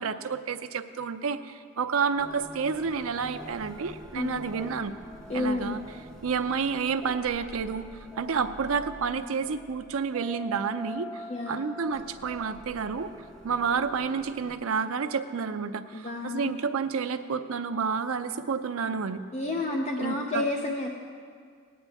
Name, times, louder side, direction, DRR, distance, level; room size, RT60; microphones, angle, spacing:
voice 1, 0.0-4.9 5.3-5.8 6.2-7.9 8.2-13.1 13.4-19.2 20.0-20.4, right 5 dB, 80° right, 9 dB, 0.5 m, -30 dB
sound 1, 2.2-14.5, right 1 dB, 5° left, 1.0 m, -45 dB
voice 2, 5.3-5.8 11.3-11.6 15.9-16.5 19.3-21.0, left 2 dB, 30° left, 0 dB, 0.6 m, -30 dB
18.0 x 9.4 x 3.5 m, 2.1 s
head